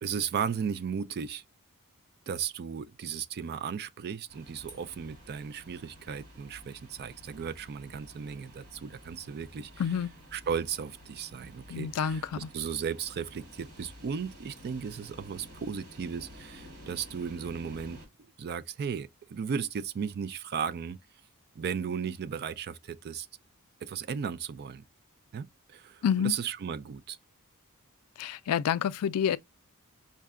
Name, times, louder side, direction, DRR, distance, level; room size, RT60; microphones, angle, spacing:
voice 1, 0.0-1.4 2.3-9.8 10.3-18.0 18.4-21.0 21.6-23.3 23.8-24.8 25.3-27.2, right 7 dB, 45° right, 0.3 m, -35 dB
sound 1, 4.3-18.1, equal, 65° right, 1.9 m, -51 dB
voice 2, 9.8-10.1 11.7-12.5 26.0-26.3 28.2-29.4, left 8 dB, 75° left, 0.4 m, -28 dB
5.7 x 2.2 x 3.5 m
head